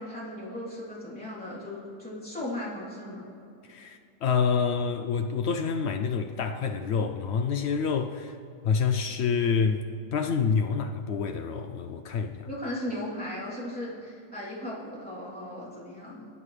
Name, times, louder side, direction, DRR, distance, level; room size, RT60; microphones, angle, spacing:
voice 1, 0.0-3.2 12.5-16.3, left 1 dB, 5° left, -9 dB, 3.1 m, -37 dB
voice 2, 3.7-8.4 8.6-9.8 10.1-12.5, left 6 dB, 90° left, 6 dB, 0.5 m, -27 dB
18.0 x 9.1 x 3.3 m, 2.6 s
omnidirectional pair, 1.7 m